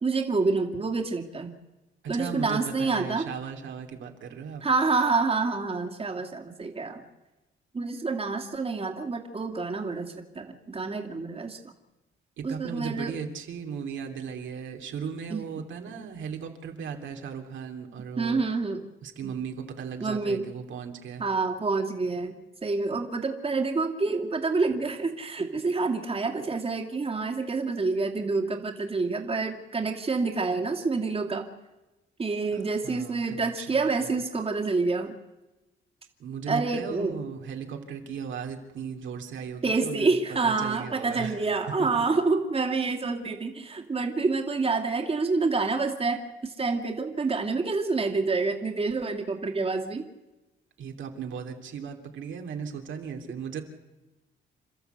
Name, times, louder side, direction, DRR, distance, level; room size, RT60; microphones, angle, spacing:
voice 1, 0.0-1.5 2.1-3.3 4.6-7.0 7.7-11.7 12.4-13.2 15.3-15.5 18.2-18.8 19.2-19.3 20.0-20.5 21.2-22.4 22.6-31.4 32.2-35.1 36.5-37.2 39.6-50.0, right 3 dB, 30° right, 3 dB, 2.5 m, -28 dB
voice 2, 2.0-4.6 12.4-18.4 19.0-21.2 32.5-34.2 36.2-42.0 50.8-53.6, right 6 dB, 75° right, 4 dB, 3.0 m, -37 dB
28.5 x 12.5 x 8.1 m, 1.1 s
cardioid pair, 90°, 20 cm